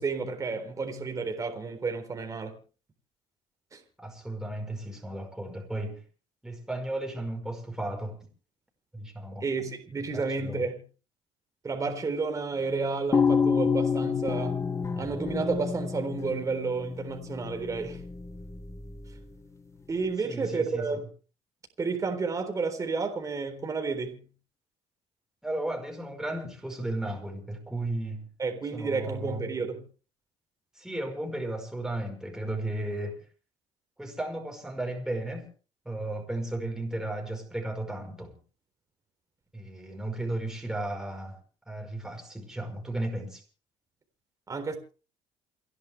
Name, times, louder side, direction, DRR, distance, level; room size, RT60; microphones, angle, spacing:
voice 1, 0.0-2.5 3.7-3.8 9.4-10.8 11.6-14.6 15.0-18.0 19.9-21.0 21.8-24.2 28.4-29.8 44.5-44.8, right 4 dB, 25° right, 3.9 m, -31 dB
voice 2, 4.0-6.0 6.4-8.3 8.9-9.5 10.0-10.6 20.2-20.9 25.4-28.3 28.7-29.4 30.8-33.2 34.0-35.5 35.9-38.4 39.5-41.4 41.7-43.4, right 1 dB, 5° right, 5.2 m, -34 dB
sound 1, 13.1-19.2, left 5 dB, 25° left, 1.2 m, -29 dB
29.0 x 11.0 x 3.5 m
cardioid pair, 115°, 12 cm